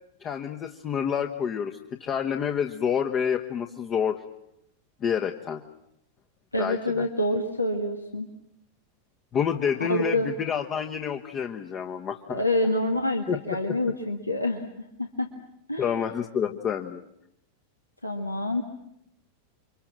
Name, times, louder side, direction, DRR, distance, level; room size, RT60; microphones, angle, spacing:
voice 1, 0.2-4.2 5.0-5.6 6.6-7.1 9.3-12.4 13.3-13.4 13.7-13.8 15.8-17.0, left 7 dB, 30° left, 6 dB, 1.4 m, -28 dB
voice 2, 6.5-8.3 9.9-10.3 12.3-15.3 15.7-16.0 18.0-18.6, left 1 dB, 85° left, 3 dB, 1.8 m, -27 dB
30.0 x 24.5 x 7.6 m, 0.78 s
figure-of-eight pair, 90°, 0 cm